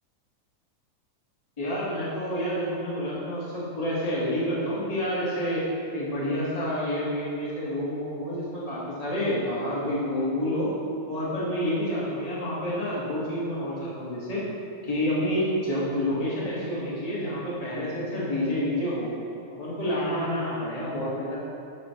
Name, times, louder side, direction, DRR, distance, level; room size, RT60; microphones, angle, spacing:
voice 1, 1.6-5.6 5.9-10.7 11.1-14.4 14.8-19.1 19.5-21.4, equal, 20° left, -7 dB, 1.1 m, -28 dB
10.5 x 4.3 x 5.9 m, 2.6 s
omnidirectional pair, 3.8 m